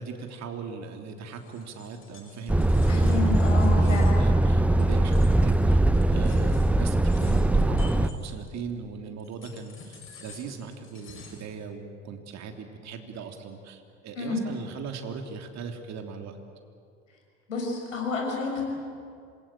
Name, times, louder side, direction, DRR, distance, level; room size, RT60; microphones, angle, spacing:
voice 1, 0.0-3.2 3.7-16.4, right 5 dB, 45° right, 4 dB, 3.3 m, -39 dB
sound 1, 1.3-8.7 9.2-11.5, left 5 dB, 35° left, 6.1 m, -50 dB
Truck, 2.5-8.1, right 1 dB, 5° right, 0.7 m, -21 dB
voice 2, 2.9-4.2 14.1-14.5 17.5-18.6, left 3 dB, 80° left, 1 dB, 6.1 m, -30 dB
27.0 x 21.5 x 9.0 m, 2.4 s
figure-of-eight pair, 70°, 37 cm